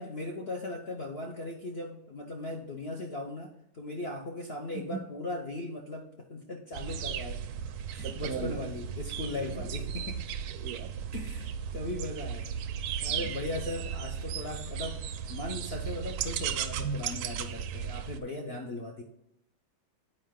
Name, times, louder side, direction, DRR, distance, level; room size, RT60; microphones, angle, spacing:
voice 1, 0.0-7.4 7.9-10.2 11.1-12.5 13.0-15.0 15.3-19.0, left 2 dB, 65° left, 1 dB, 0.6 m, -38 dB
sound 1, 6.7-18.2, right 8 dB, 90° right, 1.5 m, -36 dB
voice 2, 8.0-8.5 9.4-9.6 10.5-10.9 13.1-13.3 16.8-17.2, right 5 dB, 70° right, 6 dB, 0.9 m, -38 dB
8.2 x 5.0 x 3.7 m, 0.83 s
omnidirectional pair, 2.2 m